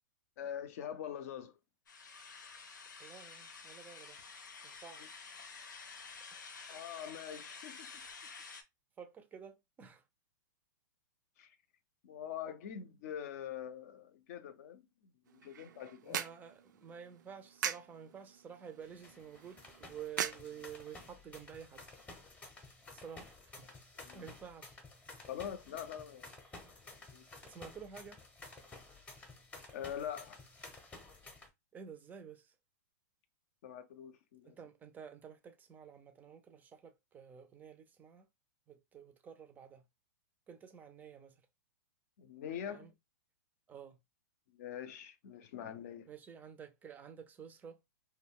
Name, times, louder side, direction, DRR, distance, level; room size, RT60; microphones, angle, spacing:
voice 1, 0.4-1.6 6.7-7.9 11.4-11.6 12.0-16.3 24.0-24.3 25.3-26.3 27.1-27.2 29.7-30.4 33.6-34.6 42.2-42.9 44.5-46.1, left 9 dB, 55° left, 0.6 m, -44 dB
sound 1, 1.9-8.6, left 5 dB, 90° left, 0.7 m, -50 dB
voice 2, 3.0-4.2 4.6-5.2 6.3-6.5 9.0-10.0 16.0-21.8 22.9-23.7 24.1-24.8 27.4-28.2 31.7-32.5 34.4-38.3 38.7-39.8 40.5-41.5 42.7-42.9 43.7-44.0 46.1-47.8, right 7 dB, 15° right, 0.4 m, -51 dB
sound 2, 15.3-21.2, right 9 dB, 80° right, 0.4 m, -43 dB
sound 3, 18.8-31.5, left 2 dB, 15° left, 0.7 m, -53 dB
2.2 x 2.2 x 3.6 m
hypercardioid pair, 135°, 10 cm